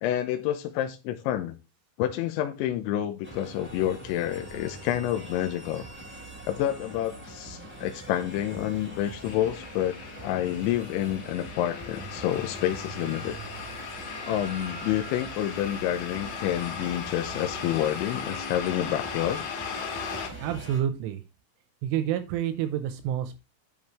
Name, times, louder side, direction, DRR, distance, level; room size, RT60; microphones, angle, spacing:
voice 1, 0.0-1.5 2.0-5.8 6.5-10.0 10.2-13.3 14.2-19.4, left 12 dB, 80° left, 5 dB, 2.9 m, -28 dB
sound 1, 3.2-20.8, right 1 dB, 5° right, 2.9 m, -43 dB
sound 2, 9.3-20.3, left 6 dB, 65° left, 3.7 m, -38 dB
voice 2, 20.4-21.2 21.8-23.4, right 10 dB, 85° right, 9 dB, 3.2 m, -28 dB
10.5 x 7.2 x 3.2 m, 0.27 s
omnidirectional pair, 5.9 m